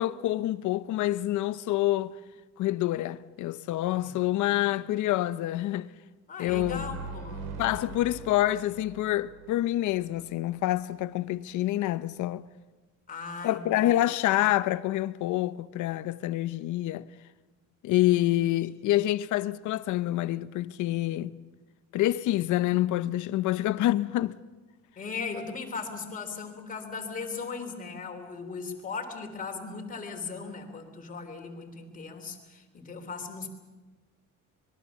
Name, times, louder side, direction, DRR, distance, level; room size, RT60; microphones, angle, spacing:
voice 1, 0.0-2.1 2.6-5.9 6.4-6.9 7.6-12.4 13.4-17.1 17.8-21.4 21.9-24.4, left 15 dB, 70° left, 0.8 m, -27 dB
voice 2, 3.9-4.6 6.3-7.6 13.1-13.9 25.0-33.5, left 4 dB, 25° left, 3.4 m, -38 dB
sound 1, 6.5-10.2, right 4 dB, 90° right, 3.2 m, -42 dB
25.0 x 21.5 x 7.2 m
cardioid pair, 165°, 31 cm